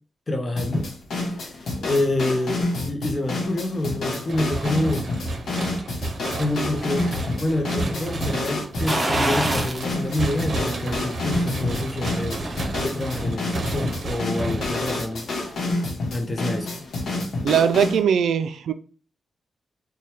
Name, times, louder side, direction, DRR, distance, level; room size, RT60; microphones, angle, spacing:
voice 1, 0.3-0.9 1.4-5.1 6.4-12.4 12.8-15.3 16.1-16.8, left 1 dB, 30° left, 0.7 m, -27 dB
sound 1, 0.6-18.0, left 2 dB, 70° left, 0.9 m, -29 dB
sound 2, 4.3-15.5, right 2 dB, 55° right, 0.7 m, -32 dB
sound 3, 8.9-9.9 10.3-10.4 11.9-12.7 13.1-13.2, right 1 dB, 20° right, 0.8 m, -25 dB
voice 2, 17.4-18.7, right 7 dB, 90° right, 0.3 m, -20 dB
3.2 x 2.2 x 4.3 m
wide cardioid pair, 110°, 0 cm